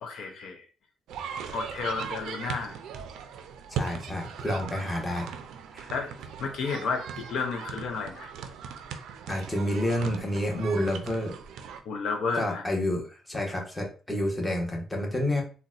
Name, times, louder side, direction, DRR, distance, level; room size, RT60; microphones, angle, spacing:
voice 1, 0.0-0.6 1.5-2.8 5.9-6.1 6.4-8.3 11.9-12.6, left 4 dB, 75° left, 3 dB, 0.5 m, -32 dB
sound 1, 1.1-11.8, right 7 dB, 85° right, 0.4 m, -39 dB
voice 2, 3.7-5.3 5.7-5.9 9.3-11.3 12.3-15.4, left 1 dB, 15° left, 1 dB, 1.0 m, -29 dB
3.9 x 2.1 x 2.4 m, 0.37 s
cardioid pair, 90°, 0 cm